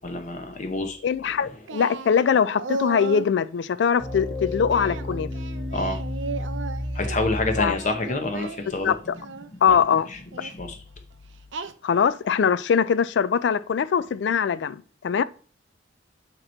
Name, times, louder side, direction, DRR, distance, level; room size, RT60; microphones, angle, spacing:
voice 1, 0.0-1.0 1.2-1.3 5.7-6.0 6.9-8.9 9.7-9.8 10.1-10.8, left 2 dB, 40° left, 0.7 m, -28 dB
voice 2, 1.0-5.3 7.6-7.8 8.8-9.0 9.6-10.1 11.8-15.2, left 7 dB, 65° left, 0.3 m, -22 dB
Singing, 1.7-3.3 4.7-7.2 7.7-9.5 10.3-10.6 11.5-12.2, right 3 dB, 75° right, 0.6 m, -35 dB
sound 1, 4.0-7.9, left 1 dB, 15° left, 1.7 m, -31 dB
8.8 x 3.0 x 4.3 m
head